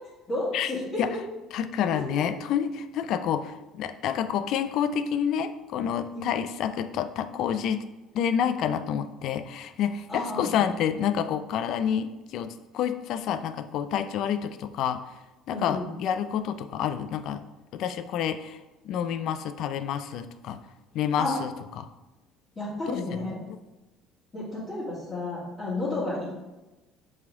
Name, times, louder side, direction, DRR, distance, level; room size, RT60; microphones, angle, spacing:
voice 1, 0.3-1.0 1.9-2.0 6.1-6.2 10.1-10.6 15.5-15.9 21.2-21.3 22.6-23.4 24.3-26.3, left 2 dB, 20° left, -12 dB, 2.0 m, -31 dB
voice 2, 1.5-7.8 8.1-15.0 15.5-17.5 17.7-18.6 18.8-20.6 20.9-21.5 21.8-21.9 23.1-23.2, left 8 dB, 55° left, 11 dB, 0.4 m, -28 dB
7.1 x 4.3 x 3.6 m, 1.1 s
cardioid pair, 150°, 0 cm